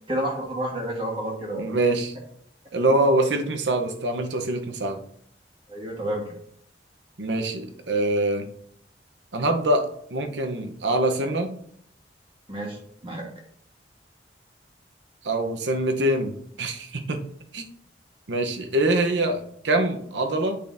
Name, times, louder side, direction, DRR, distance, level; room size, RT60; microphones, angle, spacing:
voice 1, 0.1-1.7 5.7-6.4 12.5-13.3, right 1 dB, 30° right, -1 dB, 1.4 m, -30 dB
voice 2, 1.6-2.2 2.7-5.0 7.2-8.5 9.3-11.6 15.2-17.2 17.5-17.6 18.3-20.6, right 1 dB, 80° right, 5 dB, 0.8 m, -24 dB
9.3 x 5.1 x 2.6 m, 0.67 s
head